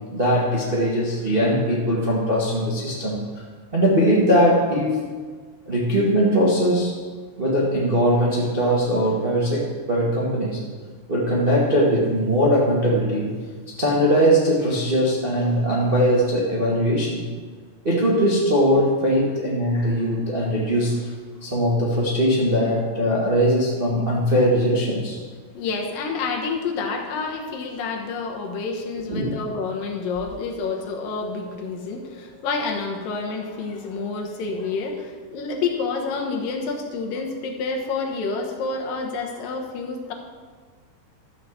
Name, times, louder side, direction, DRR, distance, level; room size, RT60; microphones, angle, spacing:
voice 1, 0.1-3.2 3.7-5.0 5.7-6.9 7.4-10.6 11.1-13.4 13.8-17.2 17.8-21.1 21.4-25.2 29.1-29.3, equal, 35° right, -5 dB, 0.9 m, -20 dB
voice 2, 25.5-40.1, left 4 dB, 75° left, 2 dB, 2.8 m, -28 dB
13.0 x 5.2 x 7.2 m, 1.5 s
omnidirectional pair, 4.0 m